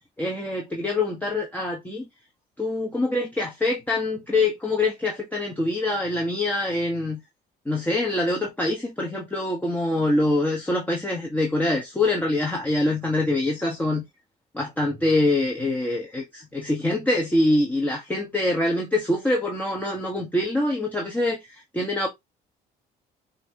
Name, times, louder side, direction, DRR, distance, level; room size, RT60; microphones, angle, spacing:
voice 1, 0.2-2.1 2.6-7.2 7.7-14.0 14.5-22.1, left 2 dB, 10° left, 1.0 m, -24 dB
5.4 x 2.8 x 2.7 m
cardioid pair, 110°, 17 cm